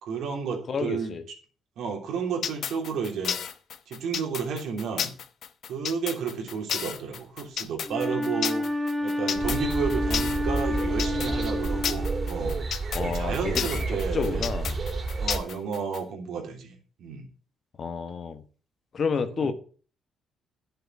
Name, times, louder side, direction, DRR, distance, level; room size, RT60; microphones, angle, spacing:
voice 1, 0.0-1.1 1.8-3.4 3.9-5.1 5.7-8.6 9.0-12.6 13.0-14.5 15.2-17.3 19.4-19.5, right 6 dB, 75° right, 3.2 m, -32 dB
voice 2, 0.7-1.2 12.9-14.8 17.8-18.4 18.9-19.5, left 5 dB, 50° left, 1.4 m, -30 dB
sound 1, 2.4-16.0, left 8 dB, 65° left, 0.9 m, -32 dB
Wind instrument woodwind instrument, 7.9-12.6, left 1 dB, ahead, 1.8 m, -30 dB
sound 2, 9.4-15.4, right 3 dB, 40° right, 3.4 m, -30 dB
11.0 x 6.8 x 6.0 m
cardioid pair, 90°, 0 cm